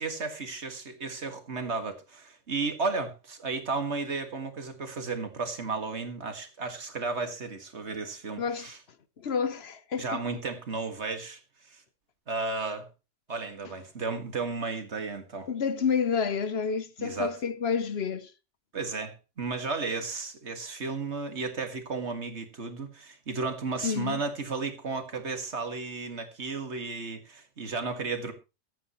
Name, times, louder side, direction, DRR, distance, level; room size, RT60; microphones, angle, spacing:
voice 1, 0.0-8.8 10.0-11.8 12.3-12.9 13.3-15.5 17.0-17.4 18.7-28.3, right 4 dB, 65° right, 2.1 m, -34 dB
voice 2, 9.2-10.2 15.5-18.3 23.8-24.2, left 6 dB, 60° left, 1.1 m, -29 dB
22.5 x 9.1 x 3.1 m
omnidirectional pair, 1.2 m